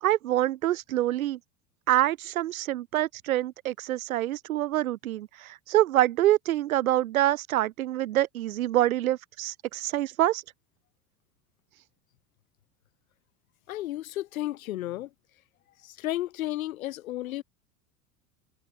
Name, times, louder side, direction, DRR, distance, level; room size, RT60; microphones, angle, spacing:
voice 1, 0.0-1.4 1.9-10.4, right 14 dB, 60° right, 1.3 m, -26 dB
voice 2, 13.7-15.1 15.8-17.4, left 15 dB, 60° left, 2.1 m, -33 dB
figure-of-eight pair, 80°, 47 cm